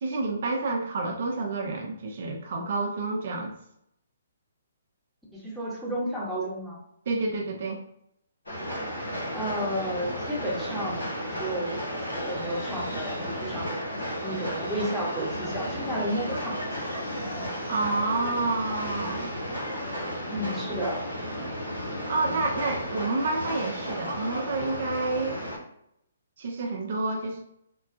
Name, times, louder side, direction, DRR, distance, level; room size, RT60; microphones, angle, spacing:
voice 1, 0.0-3.5 7.1-7.8 17.6-19.3 22.1-25.4 26.4-27.4, right 3 dB, 55° right, 2 dB, 0.5 m, -29 dB
voice 2, 5.3-6.8 9.3-11.1 11.3-11.8 12.1-13.8 14.2-16.7 16.9-17.0 20.3-21.0, equal, ahead, -7 dB, 0.9 m, -32 dB
Train, 8.5-25.6, equal, 80° left, 1.1 m, -33 dB
3.7 x 2.2 x 2.5 m, 0.76 s
figure-of-eight pair, 130°, 0 cm